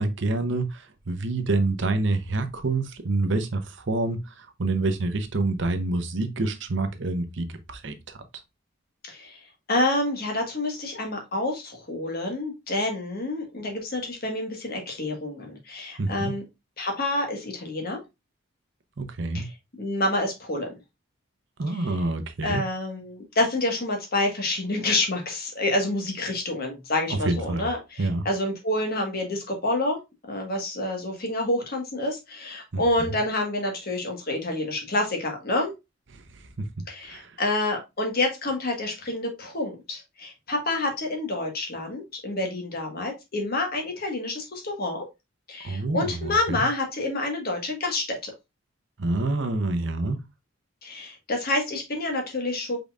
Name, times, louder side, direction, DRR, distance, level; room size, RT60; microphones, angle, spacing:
voice 1, 0.0-8.2 16.0-16.3 19.0-19.4 21.6-22.6 27.1-27.7 28.0-28.2 32.7-32.8 36.1-36.4 37.1-37.4 45.6-46.6 49.0-50.2, right 2 dB, 65° right, 0.7 m, -27 dB
voice 2, 9.0-9.4 9.7-16.4 16.8-18.0 19.3-19.5 19.8-20.7 21.7-22.0 22.4-30.0 30.3-35.7 36.9-45.0 45.5-48.3 50.8-52.8, left 2 dB, 50° left, 1.4 m, -28 dB
5.3 x 3.9 x 2.4 m
head